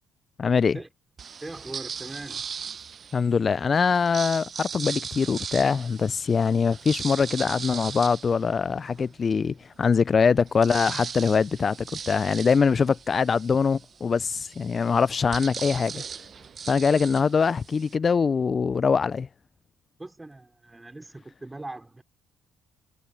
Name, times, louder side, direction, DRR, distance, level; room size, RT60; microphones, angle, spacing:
voice 1, 0.4-0.8 3.1-16.0 16.7-19.3, left 5 dB, 40° left, 0.4 m, -23 dB
sound 1, 1.2-3.3 3.9-9.1 9.6-9.7 9.9-17.9, right 6 dB, 50° right, 0.7 m, -38 dB
voice 2, 1.4-2.5 20.0-22.0, right 2 dB, 15° right, 4.2 m, -40 dB
supercardioid pair, 65°, 0 cm